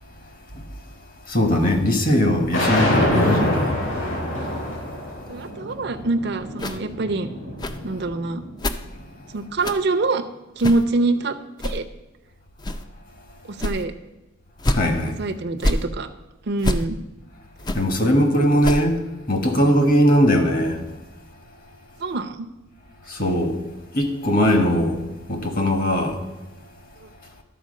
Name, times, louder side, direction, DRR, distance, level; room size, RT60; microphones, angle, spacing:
voice 1, 1.3-3.8 14.7-15.2 17.7-19.0 19.3-20.8 23.1-23.6 23.9-25.0 25.3-26.2, equal, 45° left, 1.3 m, -20 dB
sound 1, 2.5-8.7, left 1 dB, 80° left, 3.9 m, -25 dB
voice 2, 5.3-7.3 7.8-8.4 9.3-10.2 10.6-11.3 11.6-11.8 13.6-13.9 15.2-16.1 16.5-17.0 18.5-18.6 22.0-22.5, right 2 dB, 55° right, 0.6 m, -24 dB
sound 2, 6.6-6.8 7.6-7.8 8.6-8.8 9.6-9.8 10.6-10.8 11.6-11.8 12.6-12.8 13.6-13.8 14.6-14.8 15.6-15.8 16.6-16.8 17.6-17.8 18.6-18.8, left 1 dB, 20° left, 0.4 m, -25 dB
12.0 x 4.5 x 6.4 m
head